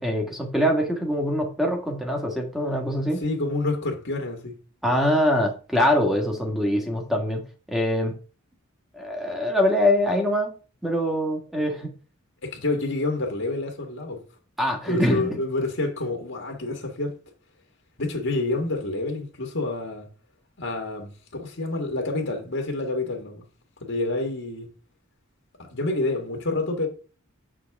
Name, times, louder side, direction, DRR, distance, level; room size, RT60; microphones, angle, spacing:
voice 1, 0.0-3.2 4.8-7.4 7.7-8.1 8.9-10.5 10.8-11.9 14.6-15.3, left 1 dB, ahead, 1.6 m, -23 dB
voice 2, 3.2-4.6 12.4-14.2 14.9-17.2 18.0-20.1 20.6-23.4 23.8-24.7 25.6-26.9, left 2 dB, 60° left, 1.7 m, -28 dB
7.6 x 6.2 x 3.6 m
head